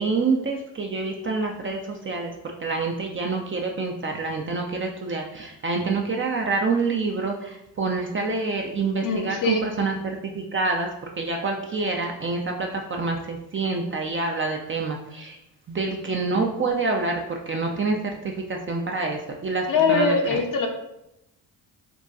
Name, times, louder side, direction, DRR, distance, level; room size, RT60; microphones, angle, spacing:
voice 1, 0.0-2.3 2.6-10.9 11.2-15.4 15.7-20.4, right 3 dB, 30° right, 2 dB, 0.5 m, -27 dB
voice 2, 9.0-9.7 19.7-20.7, left 4 dB, 45° left, 3 dB, 0.7 m, -22 dB
3.9 x 2.2 x 2.4 m, 0.83 s
hypercardioid pair, 50°, 46 cm